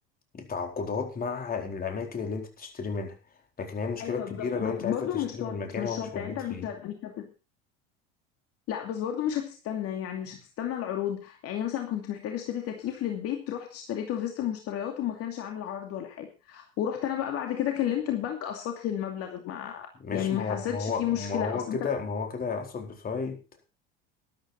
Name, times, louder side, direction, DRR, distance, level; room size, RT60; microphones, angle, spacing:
voice 1, 0.3-3.2 3.6-6.7 20.0-23.4, left 5 dB, 30° left, 4.2 m, -33 dB
voice 2, 4.0-7.3 8.7-21.9, left 10 dB, 55° left, 2.6 m, -32 dB
13.0 x 12.0 x 4.4 m
hypercardioid pair, 85°, 29 cm